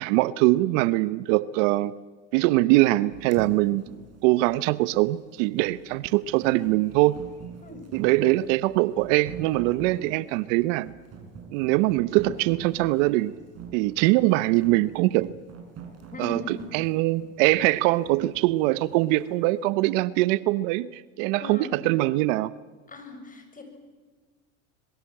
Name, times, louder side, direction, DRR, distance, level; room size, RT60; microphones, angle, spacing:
voice 1, 0.0-1.9 2.3-3.9 4.2-7.2 7.9-10.9 11.5-13.3 13.7-15.3 16.2-22.5, right 18 dB, 70° right, 17 dB, 0.9 m, -23 dB
sound 1, 3.1-19.4, right 6 dB, 40° right, 7.1 m, -44 dB
voice 2, 16.1-16.6 21.3-21.7 22.9-23.6, left 2 dB, 20° left, 6 dB, 7.1 m, -39 dB
25.5 x 22.5 x 8.9 m, 1.4 s
supercardioid pair, 100°, 39 cm